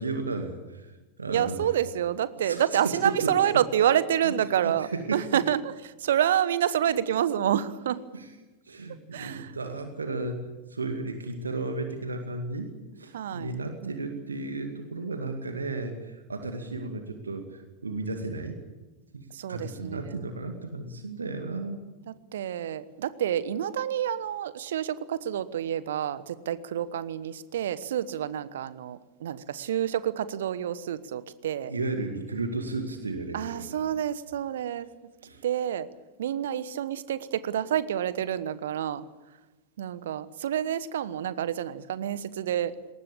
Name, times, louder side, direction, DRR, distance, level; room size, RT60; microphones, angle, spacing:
voice 1, 0.0-1.7 2.4-3.3 4.2-4.3 4.6-5.2 8.1-8.3 8.6-12.7 13.0-18.6 19.1-21.8 31.6-33.9 35.2-35.4, right 3 dB, 75° right, 6 dB, 2.2 m, -34 dB
voice 2, 1.3-8.0 9.1-9.5 13.1-13.5 13.8-13.9 19.3-20.3 22.1-31.7 33.3-34.9 35.4-35.9 36.2-39.0 39.8-42.7, right 10 dB, 60° right, 16 dB, 1.1 m, -28 dB
20.5 x 19.0 x 8.6 m, 1.1 s
figure-of-eight pair, 90°, 0 cm